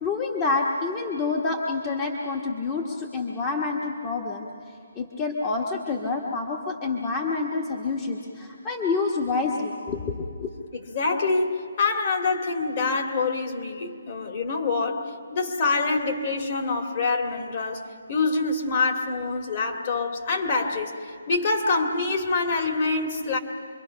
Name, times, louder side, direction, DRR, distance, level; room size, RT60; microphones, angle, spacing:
voice 1, 0.0-4.5 4.9-10.5, left 4 dB, 20° left, -1 dB, 1.2 m, -28 dB
voice 2, 10.7-17.8 18.1-23.4, left 3 dB, 40° left, 2 dB, 2.2 m, -26 dB
27.0 x 23.0 x 5.8 m, 2.3 s
hypercardioid pair, 165°, 0 cm